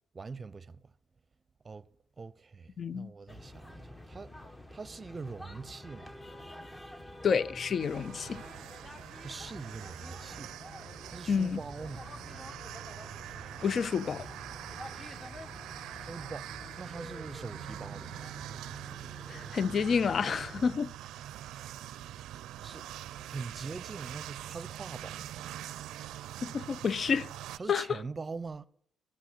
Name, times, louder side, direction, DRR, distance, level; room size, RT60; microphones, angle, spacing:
voice 1, 0.1-0.8 1.6-1.9 2.2-4.3 4.7-6.1 9.2-10.5 11.1-12.1 16.1-16.5 16.8-18.2 22.6-22.9 23.2-25.3 27.6-28.7, right 4 dB, 35° right, 0.6 m, -43 dB
voice 2, 2.8-3.1 7.2-8.4 11.3-11.6 13.6-14.3 19.3-20.9 26.4-27.3 27.7-28.0, left 6 dB, 55° left, 0.4 m, -29 dB
sound 1, 3.3-20.7, left 1 dB, 15° left, 1.2 m, -48 dB
sound 2, 7.8-27.6, right 12 dB, 80° right, 0.4 m, -44 dB
12.5 x 8.3 x 8.0 m
supercardioid pair, 70°, 0 cm